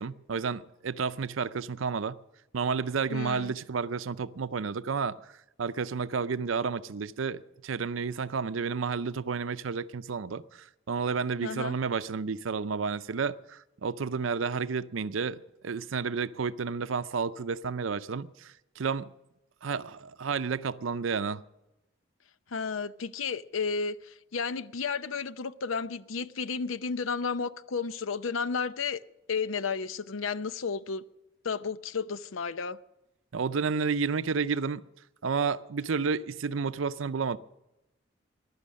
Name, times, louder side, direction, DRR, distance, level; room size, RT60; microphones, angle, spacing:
voice 1, 0.0-2.2 2.5-5.2 5.6-10.4 10.9-15.4 15.6-19.1 19.6-21.4 33.3-34.8 35.2-37.4, right 5 dB, 75° right, 0.6 m, -31 dB
voice 2, 3.1-3.5 11.4-11.7 22.5-29.0 29.3-31.0 31.4-32.8, left 5 dB, 85° left, 0.6 m, -32 dB
15.5 x 11.5 x 6.4 m
head